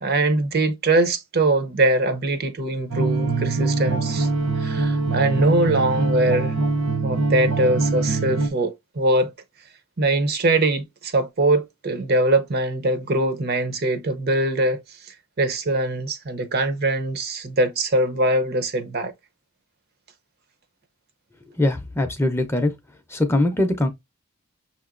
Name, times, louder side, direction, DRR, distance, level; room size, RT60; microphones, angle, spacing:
voice 1, 0.0-4.3 4.6-6.5 7.0-9.3 10.0-19.1, right 2 dB, 45° right, 0.6 m, -22 dB
sound 1, 2.9-8.5, right 3 dB, 75° right, 0.8 m, -23 dB
voice 2, 21.6-22.7 23.1-23.9, left 1 dB, 10° left, 0.5 m, -21 dB
6.1 x 2.9 x 2.4 m
head